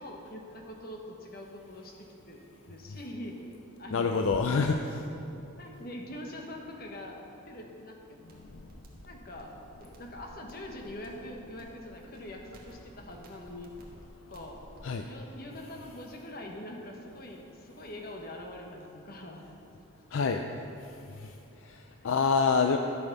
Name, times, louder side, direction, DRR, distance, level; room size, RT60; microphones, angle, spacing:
voice 1, 0.0-3.5 3.8-5.0 5.6-7.2 7.5-8.2 9.0-13.7 14.3-14.6 15.0-19.4 22.0-22.1, left 1 dB, 45° left, 1 dB, 1.3 m, -44 dB
voice 2, 3.9-4.8 8.4-8.6 14.8-15.1 20.1-20.4 21.1-21.3 21.6-22.8, left 5 dB, 65° left, 5 dB, 0.5 m, -27 dB
sound 1, 8.3-14.9, equal, 45° right, 1.7 m, -54 dB
13.5 x 7.0 x 5.4 m, 2.7 s
head